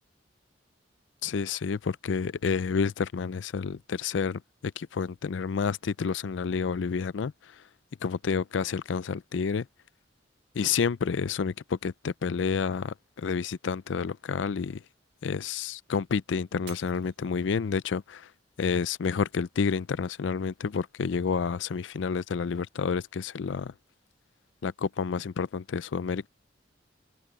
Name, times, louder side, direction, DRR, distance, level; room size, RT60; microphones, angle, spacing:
voice 1, 1.2-7.3 8.0-9.7 10.6-14.8 15.2-18.3 18.6-23.7 24.6-26.3, left 5 dB, 85° left, 0.4 m, -29 dB
Shatter, 16.7-17.9 18.5-18.9 19.5-19.6, right 10 dB, 60° right, 1.7 m, -51 dB
head